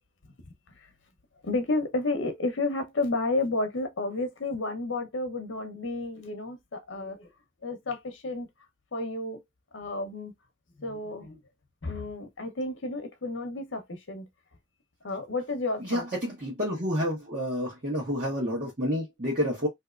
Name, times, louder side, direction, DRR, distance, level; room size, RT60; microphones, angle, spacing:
voice 1, 1.4-7.3 7.6-8.5 8.9-9.4 9.7-10.3 10.8-11.4 11.8-14.3 15.0-16.0, left 2 dB, 65° left, 0.9 m, -31 dB
voice 2, 15.9-19.7, equal, 40° right, 1.1 m, -29 dB
3.4 x 2.7 x 2.4 m
head